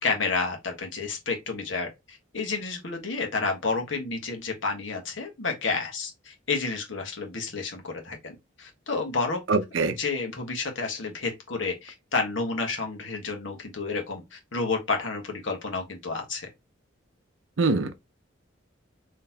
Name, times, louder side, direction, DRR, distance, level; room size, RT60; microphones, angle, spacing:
voice 1, 0.0-9.4 10.0-16.5, left 4 dB, 70° left, 1.4 m, -30 dB
voice 2, 9.5-10.0 17.6-18.1, right 3 dB, 70° right, 0.6 m, -24 dB
3.9 x 3.2 x 2.8 m
head